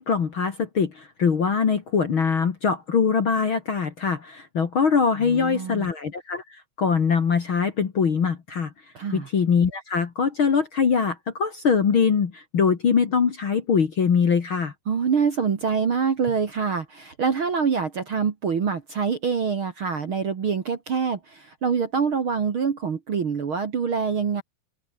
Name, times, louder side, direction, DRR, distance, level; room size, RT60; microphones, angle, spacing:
voice 1, 0.0-6.4 6.8-8.7 9.1-14.7, left 6 dB, 45° left, 2.1 m, -22 dB
voice 2, 5.2-5.9 8.9-9.3 14.9-24.4, right 6 dB, 45° right, 2.1 m, -25 dB
omnidirectional pair, 4.2 m